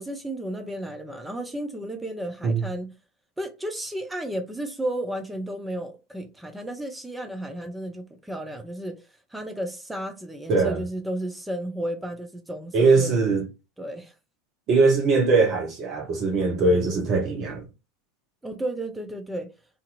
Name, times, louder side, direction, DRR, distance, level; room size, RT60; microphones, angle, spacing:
voice 1, 0.0-2.9 3.4-9.0 9.3-13.1 13.8-14.1 18.4-19.5, right 1 dB, 5° right, 0.6 m, -33 dB
voice 2, 10.5-10.8 12.7-13.5 14.7-17.6, right 3 dB, 40° right, 0.8 m, -21 dB
2.6 x 2.6 x 2.5 m
figure-of-eight pair, 80°, 0 cm